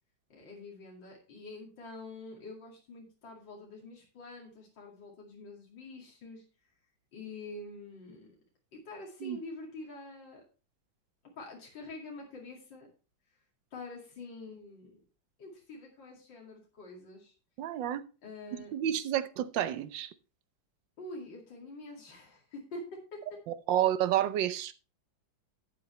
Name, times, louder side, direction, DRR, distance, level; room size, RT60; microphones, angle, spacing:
voice 1, 0.3-6.4 7.1-8.3 8.7-10.4 11.4-12.9 13.7-15.0 15.4-17.3 18.2-18.7 21.0-23.2, left 2 dB, 70° left, 3.0 m, -46 dB
voice 2, 17.6-18.0 18.7-20.1 23.5-24.7, right 11 dB, 75° right, 1.4 m, -30 dB
11.5 x 8.6 x 3.1 m
omnidirectional pair, 2.1 m